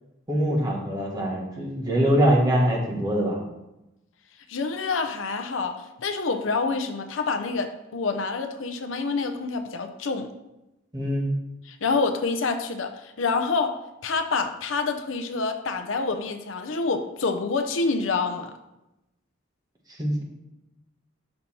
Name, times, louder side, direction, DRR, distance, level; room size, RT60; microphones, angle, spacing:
voice 1, 0.3-3.4 10.9-11.2 20.0-20.2, equal, 20° right, -2 dB, 1.6 m, -23 dB
voice 2, 4.5-5.7 6.0-10.3 11.6-13.7 14.0-18.5, left 4 dB, 75° left, 7 dB, 0.6 m, -27 dB
6.7 x 5.4 x 4.3 m, 0.93 s
head